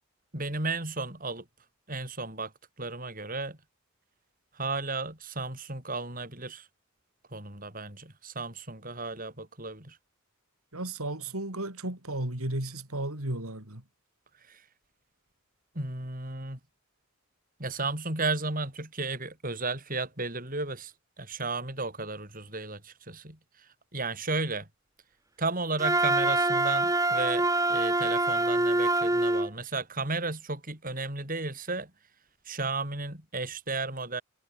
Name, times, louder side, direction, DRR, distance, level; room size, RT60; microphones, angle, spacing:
voice 1, 0.3-1.4 1.9-2.5 2.8-3.6 4.5-6.7 7.3-10.0 14.4-14.6 15.7-16.6 17.6-24.7 25.4-31.9 32.4-34.2, right 3 dB, 40° right, 7.9 m, -34 dB
voice 2, 10.7-13.8, right 1 dB, 80° right, 4.2 m, -34 dB
Wind instrument woodwind instrument, 25.8-29.5, right 2 dB, 15° right, 3.4 m, -25 dB
head